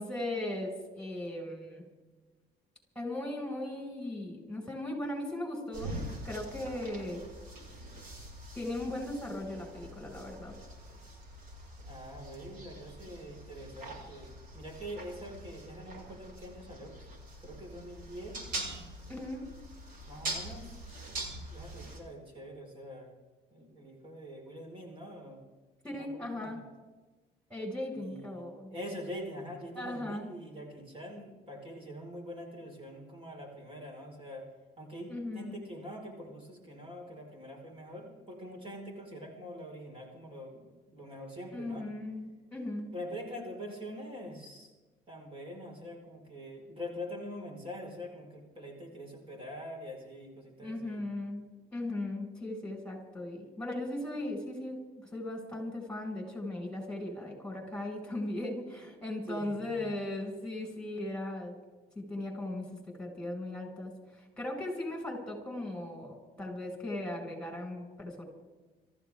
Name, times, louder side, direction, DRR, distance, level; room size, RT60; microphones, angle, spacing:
voice 1, 0.0-1.8 2.9-7.2 8.5-10.6 19.1-19.5 25.8-26.6 27.5-28.7 29.8-30.3 35.1-35.6 41.5-42.9 50.6-51.4 51.7-61.6 61.9-68.2, left 1 dB, 5° left, 1 dB, 5.9 m, -38 dB
sound 1, 5.7-22.0, right 1 dB, 55° right, 5.9 m, -44 dB
voice 2, 11.9-16.9 17.4-18.4 20.1-20.7 21.1-23.1 23.5-25.4 25.9-26.6 27.9-34.5 34.8-41.9 42.9-44.7 45.1-51.0 59.3-59.5 59.8-59.9, equal, 35° right, 0 dB, 5.0 m, -44 dB
26.0 x 14.5 x 3.7 m, 1.2 s
cardioid pair, 110°, 17 cm